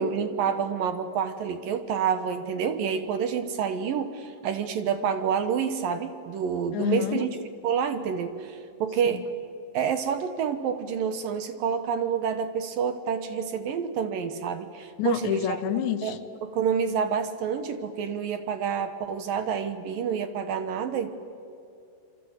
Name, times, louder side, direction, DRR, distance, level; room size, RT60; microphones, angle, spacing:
voice 1, 0.0-7.4 7.6-9.3 9.7-15.6 16.0-21.1, right 7 dB, 65° right, 2.4 m, -28 dB
voice 2, 6.7-7.2 9.1-9.2 15.0-16.2, left 11 dB, 85° left, 3.4 m, -28 dB
27.5 x 25.0 x 8.1 m
omnidirectional pair, 5.0 m